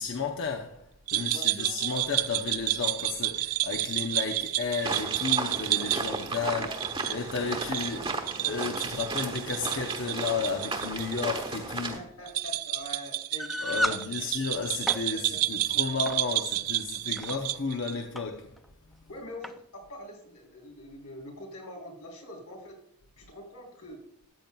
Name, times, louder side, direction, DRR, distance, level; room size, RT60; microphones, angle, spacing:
voice 1, 0.0-6.7 7.1-12.0 13.6-18.6 18.9-19.0, left 4 dB, 55° left, 0.8 m, -33 dB
voice 2, 1.1-2.0 6.6-6.9 7.3-7.6 8.3-8.5 11.9-14.3 15.1-15.8 19.1-22.8 23.2-24.0, left 1 dB, 90° left, 3.7 m, -44 dB
sound 1, 1.1-11.2 11.5-11.6 12.3-18.0, right 16 dB, 70° right, 0.4 m, -31 dB
sound 2, 4.8-12.0, right 3 dB, 25° right, 1.2 m, -35 dB
sound 3, 13.4-14.0 14.7-15.0 16.1-16.3 16.9-17.3 18.2-18.3 18.6-18.7 19.4-19.6, equal, ahead, 0.3 m, -31 dB
13.5 x 8.9 x 2.3 m
head